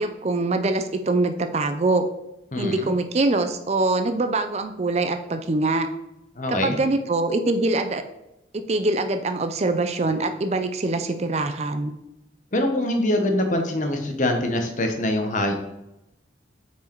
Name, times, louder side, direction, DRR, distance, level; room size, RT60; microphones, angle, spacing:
voice 1, 0.0-2.1 2.6-5.9 6.5-8.0 8.5-11.9, right 2 dB, 35° right, 8 dB, 0.4 m, -24 dB
voice 2, 2.5-2.9 6.3-6.8 12.5-15.6, left 1 dB, 40° left, 4 dB, 0.9 m, -24 dB
5.8 x 4.6 x 4.5 m, 0.88 s
head